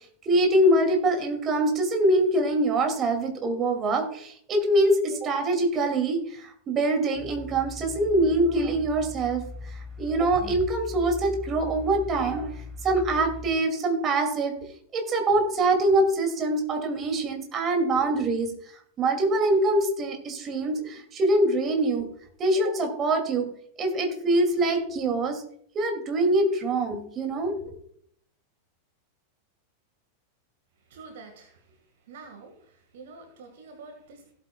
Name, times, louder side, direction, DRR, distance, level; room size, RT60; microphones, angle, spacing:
voice 1, 0.2-12.5 12.8-14.5 14.9-18.5 19.0-22.1 22.4-23.5 23.8-25.4 25.7-27.8, right 1 dB, 25° right, 4 dB, 2.5 m, -24 dB
sound 1, 7.1-13.5, left 2 dB, 10° right, 2.7 m, -39 dB
voice 2, 30.9-31.8 32.1-34.3, right 4 dB, 55° right, 5 dB, 1.7 m, -47 dB
16.5 x 8.4 x 2.3 m, 0.64 s
figure-of-eight pair, 90°, 0 cm